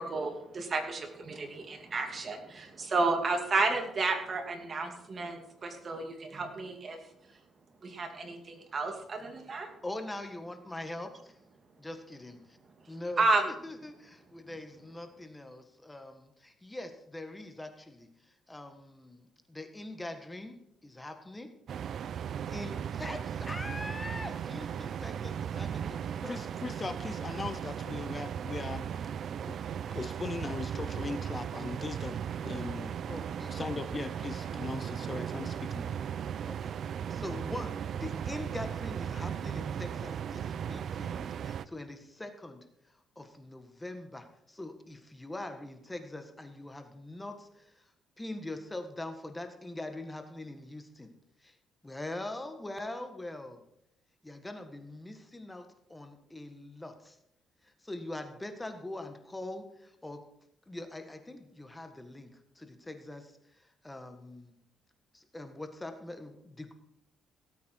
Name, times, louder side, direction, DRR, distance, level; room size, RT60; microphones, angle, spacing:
voice 1, 0.0-7.0 7.8-9.7 13.2-13.5, right 3 dB, 40° right, 5 dB, 2.6 m, -31 dB
voice 2, 9.8-11.4 11.8-12.6 12.9-13.2 13.6-21.5 22.5-26.4 33.1-33.6 36.5-36.7 37.1-51.1 51.4-51.6 51.8-53.6 54.2-57.2 57.6-60.2 60.7-64.5 65.1-66.7, left 1 dB, 15° left, 7 dB, 1.6 m, -43 dB
sound 1, 21.7-41.7, right 8 dB, 60° right, 0.5 m, -37 dB
voice 3, 26.3-28.9 29.5-29.6 29.9-32.2 32.4-33.0 33.5-36.0, left 4 dB, 30° left, 12 dB, 0.7 m, -39 dB
17.5 x 8.6 x 4.6 m, 0.79 s
cardioid pair, 90°, 0 cm